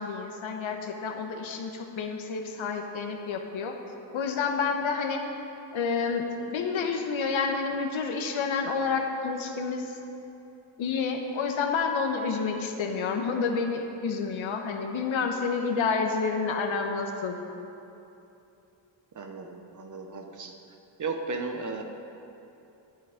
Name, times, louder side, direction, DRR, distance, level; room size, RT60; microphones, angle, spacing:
voice 1, 0.0-3.8 4.1-5.2 5.7-6.3 6.5-10.0 10.8-17.4, left 5 dB, 85° left, 3 dB, 1.2 m, -29 dB
voice 2, 19.1-20.6 21.0-21.8, right 4 dB, 40° right, 4 dB, 1.0 m, -35 dB
11.5 x 9.7 x 5.1 m, 2.9 s
wide cardioid pair, 150°, 46 cm